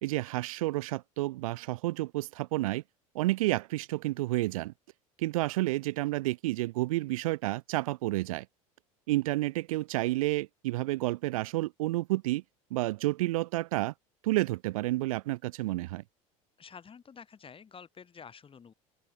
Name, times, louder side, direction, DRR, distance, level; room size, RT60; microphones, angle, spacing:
voice 1, 0.0-2.8 3.1-4.7 5.2-8.5 9.1-12.4 12.7-13.9 14.2-16.0, right 18 dB, 75° right, 2.0 m, -30 dB
voice 2, 16.6-18.7, left 6 dB, 30° left, 6.0 m, -49 dB
open air
hypercardioid pair, 80°, 18 cm